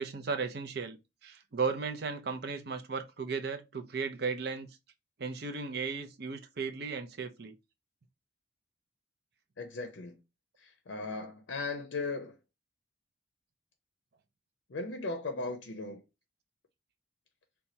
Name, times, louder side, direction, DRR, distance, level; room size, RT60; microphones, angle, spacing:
voice 1, 0.0-4.7 5.2-7.5, right 5 dB, 55° right, 0.5 m, -35 dB
voice 2, 9.6-10.2 10.6-12.4 14.7-16.0, left 3 dB, 70° left, 0.6 m, -37 dB
4.2 x 2.3 x 2.6 m
head